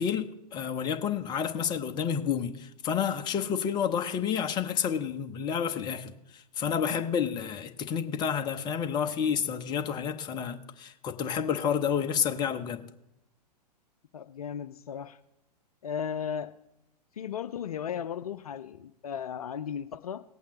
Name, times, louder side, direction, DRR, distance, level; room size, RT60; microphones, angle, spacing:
voice 1, 0.0-12.9, left 7 dB, 20° left, 0.8 m, -30 dB
voice 2, 14.1-15.2 15.8-16.5 17.1-20.2, left 8 dB, 60° left, 0.6 m, -35 dB
18.5 x 8.5 x 3.0 m
figure-of-eight pair, 105°, 21 cm